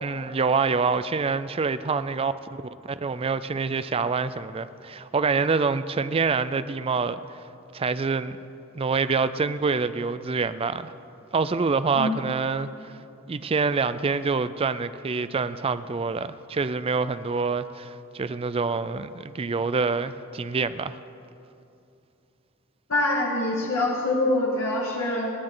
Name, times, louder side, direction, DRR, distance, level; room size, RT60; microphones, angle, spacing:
voice 1, 0.0-2.3 2.8-7.2 7.7-8.4 8.7-10.9 11.3-12.9 13.3-21.0, right 4 dB, 30° right, 0.4 m, -26 dB
voice 2, 22.9-25.3, left 2 dB, 90° left, 1.8 m, -24 dB
28.0 x 9.9 x 3.9 m
head